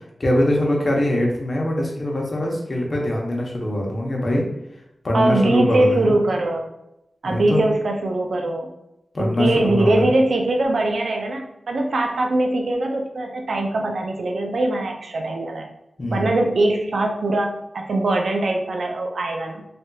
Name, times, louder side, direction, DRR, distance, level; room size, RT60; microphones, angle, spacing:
voice 1, 0.2-4.5 5.0-6.2 7.2-7.6 9.1-10.0 16.0-16.3, left 1 dB, 45° left, -1 dB, 0.8 m, -22 dB
voice 2, 5.1-6.7 7.2-8.7 9.2-15.7 16.1-19.7, right 2 dB, 80° right, 2 dB, 0.4 m, -22 dB
3.3 x 2.7 x 2.2 m, 0.87 s
wide cardioid pair, 85°, 0 cm